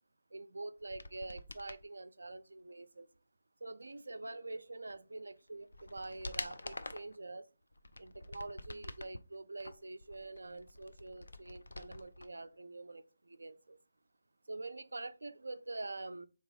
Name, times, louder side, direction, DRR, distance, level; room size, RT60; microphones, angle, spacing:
voice 1, 0.3-3.1 3.6-7.5 8.0-13.8 14.5-16.3, right 2 dB, 90° right, 0.3 m, -46 dB
sound 1, 0.8-1.8 4.9-5.0 5.5-7.2 7.7-9.2 9.6-12.3 12.5-12.6, left 2 dB, 90° left, 0.4 m, -47 dB
3.7 x 2.8 x 3.2 m
figure-of-eight pair, 150°, 0 cm